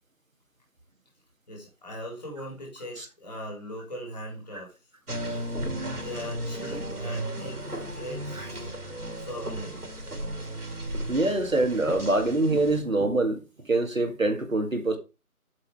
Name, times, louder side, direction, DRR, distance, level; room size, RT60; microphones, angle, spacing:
voice 1, 1.5-4.7 5.9-8.7 9.2-10.1, equal, 30° left, 4.1 m, -40 dB
sound 1, 5.1-12.8, right 1 dB, 80° right, 3.5 m, -35 dB
voice 2, 11.1-13.4 13.7-15.0, right 2 dB, 60° right, 2.1 m, -24 dB
8.0 x 6.8 x 4.8 m
figure-of-eight pair, 165°, 45 cm